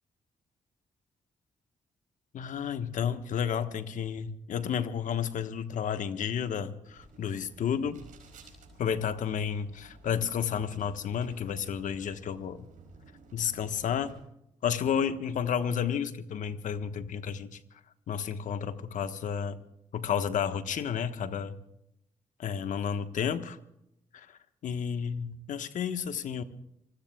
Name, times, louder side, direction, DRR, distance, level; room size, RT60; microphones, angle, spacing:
voice 1, 2.3-8.0 8.8-12.7 13.3-14.2 14.6-17.6 18.1-19.6 19.9-21.6 22.4-23.6 24.1-26.4, left 8 dB, 75° left, 9 dB, 1.3 m, -31 dB
sound 1, 6.8-14.2, right 3 dB, 80° right, 5.0 m, -54 dB
26.5 x 19.5 x 2.3 m, 0.80 s
supercardioid pair, 60°, 13 cm